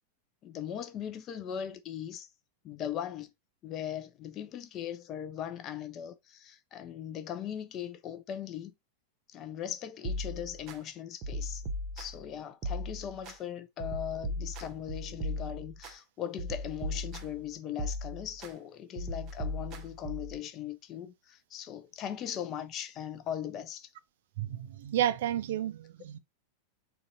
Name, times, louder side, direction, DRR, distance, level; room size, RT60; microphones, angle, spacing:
voice 1, 0.4-2.3 2.6-3.3 3.6-8.7 9.3-11.6 12.0-23.9, left 10 dB, 35° left, 0.5 m, -39 dB
sound 1, 10.0-10.8 11.2-12.3 12.6-13.4 13.8-15.9 16.4-17.4 17.8-18.5 19.0-20.4, left 1 dB, 35° right, 0.8 m, -37 dB
voice 2, 24.4-26.2, right 11 dB, 55° right, 0.3 m, -31 dB
3.9 x 2.3 x 3.6 m
figure-of-eight pair, 90°, 0 cm